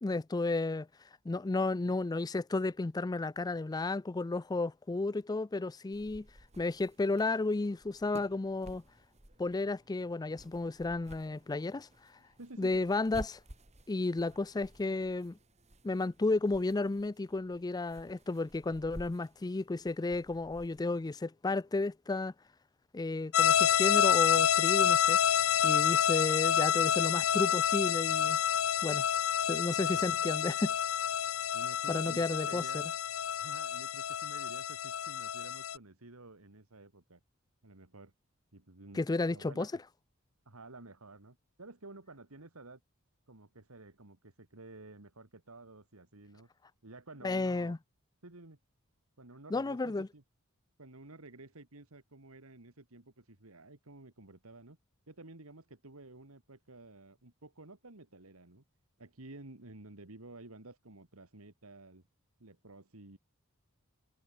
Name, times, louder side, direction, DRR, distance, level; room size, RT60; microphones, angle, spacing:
voice 1, 0.0-0.9 1.2-6.3 6.6-8.8 9.4-11.9 12.6-13.4 13.9-15.4 15.8-22.3 22.9-28.4 28.8-29.1 29.4-30.7 31.9-32.6 38.9-39.7 47.2-47.8 49.5-50.1, left 3 dB, 20° left, 0.4 m, -33 dB
sound 1, 5.9-21.1, equal, 30° right, 4.1 m, -54 dB
voice 2, 12.4-12.8 29.9-30.1 31.5-32.8 33.4-37.2 37.6-38.1 38.5-39.8 40.5-42.8 43.3-46.5 46.8-47.8 48.2-48.6 49.2-50.2 50.8-54.8 55.1-58.6 59.0-62.0 62.4-63.2, right 2 dB, 85° right, 2.4 m, -52 dB
sound 2, 23.3-35.8, left 9 dB, 70° left, 0.7 m, -28 dB
head